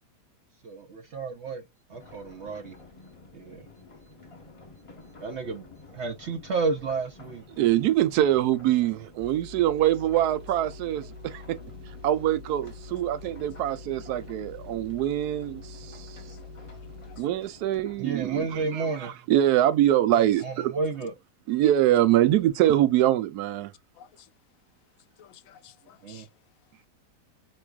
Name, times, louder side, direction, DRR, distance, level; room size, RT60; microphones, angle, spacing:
voice 1, 0.6-1.6 1.9-2.8 3.3-3.7 5.2-5.7 5.9-7.5 18.0-19.1 20.2-21.1 26.0-26.3, right 4 dB, 60° right, 0.8 m, -31 dB
sound 1, 1.9-18.7, left 3 dB, 25° left, 0.7 m, -51 dB
voice 2, 7.6-11.6 12.0-16.0 17.2-18.8 19.3-20.7 21.5-23.7, right 12 dB, 75° right, 1.1 m, -24 dB
sound 2, 9.2-17.3, left 3 dB, 40° right, 1.3 m, -45 dB
voice 3, 16.7-17.2 18.4-18.5 23.9-24.3 25.2-26.3, left 10 dB, 70° left, 0.8 m, -53 dB
4.6 x 3.1 x 2.3 m
omnidirectional pair, 1.7 m